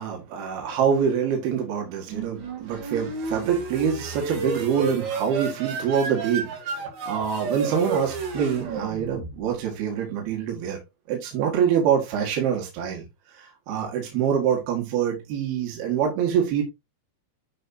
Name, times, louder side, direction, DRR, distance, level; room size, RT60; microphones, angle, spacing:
voice 1, 0.0-6.8 7.1-10.8 11.1-13.0 13.4-16.6, right 8 dB, 65° right, 3.7 m, -25 dB
sound 1, 2.1-9.7, right 4 dB, 85° right, 4.7 m, -32 dB
10.5 x 5.7 x 2.8 m
omnidirectional pair, 5.0 m